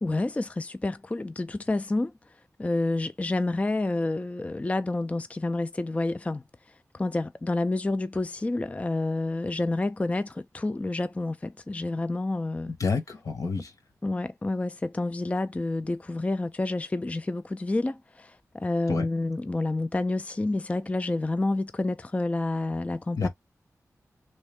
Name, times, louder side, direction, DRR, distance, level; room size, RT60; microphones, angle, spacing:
voice 1, 0.0-2.1 2.6-6.4 6.9-12.7 14.0-23.3, left 2 dB, 20° left, 0.3 m, -29 dB
voice 2, 12.8-13.7 18.9-19.1 23.2-23.3, left 4 dB, 70° left, 1.3 m, -28 dB
3.2 x 3.0 x 3.4 m
cardioid pair, 50°, 6 cm